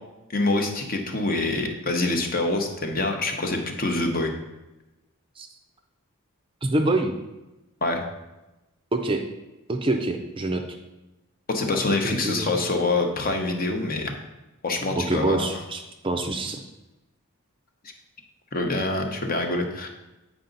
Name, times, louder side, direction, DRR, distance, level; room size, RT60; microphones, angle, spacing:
voice 1, 0.3-4.3 7.8-8.0 11.5-14.1 14.6-15.5 18.5-19.9, left 2 dB, 40° left, 4 dB, 0.8 m, -25 dB
voice 2, 6.6-7.1 8.9-9.2 9.7-10.8 11.7-12.5 15.0-16.6, right 2 dB, 25° right, 4 dB, 0.4 m, -26 dB
8.4 x 4.8 x 3.9 m, 1.0 s
head